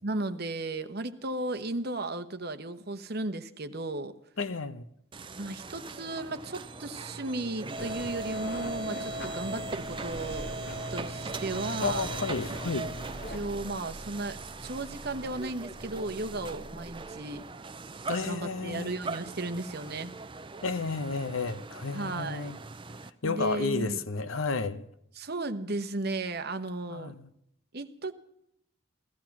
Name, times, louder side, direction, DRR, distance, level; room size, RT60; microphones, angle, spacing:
voice 1, 0.0-4.1 5.4-10.5 10.9-12.0 13.3-17.4 18.2-20.1 21.9-22.5 23.2-24.0 25.2-27.1 27.7-28.1, right 2 dB, 50° right, 1.1 m, -35 dB
voice 2, 4.4-4.8 11.8-12.9 18.1-18.9 20.6-22.6 23.2-24.8 26.9-27.3, left 4 dB, 80° left, 1.0 m, -32 dB
sound 1, 5.1-23.1, right 3 dB, 25° right, 0.7 m, -40 dB
sound 2, 7.8-13.4, left 1 dB, 50° left, 3.3 m, -42 dB
16.0 x 15.0 x 6.0 m
head